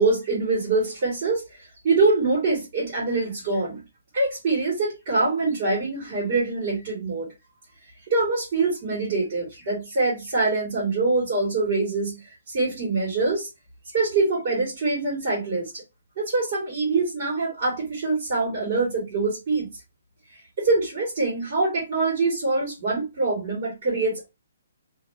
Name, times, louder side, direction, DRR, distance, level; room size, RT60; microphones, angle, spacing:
voice 1, 0.0-1.4 1.8-3.8 4.1-7.3 8.1-12.2 12.5-13.5 13.9-15.8 16.2-19.7 20.6-24.3, right 3 dB, 30° right, 1.6 m, -24 dB
2.6 x 2.5 x 2.6 m
hypercardioid pair, 175°, 0 cm